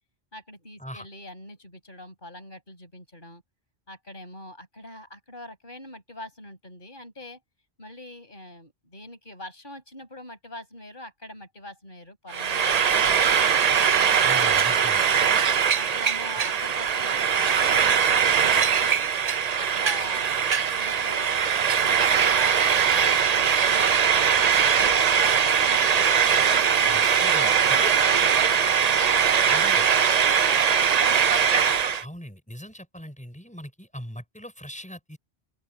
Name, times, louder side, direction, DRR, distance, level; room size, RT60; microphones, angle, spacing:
voice 1, 0.3-3.4 3.9-7.4 7.8-13.5 14.1-14.6 15.7-19.1 19.6-21.4 21.8-26.0 26.4-31.2, left 1 dB, 50° left, 7.7 m, -43 dB
Frying (food), 12.3-32.0, right 7 dB, 45° right, 0.6 m, -21 dB
voice 2, 14.2-15.1 20.0-20.1 26.9-28.0 29.5-29.8 32.0-35.2, equal, 5° left, 5.2 m, -40 dB
open air
omnidirectional pair, 1.1 m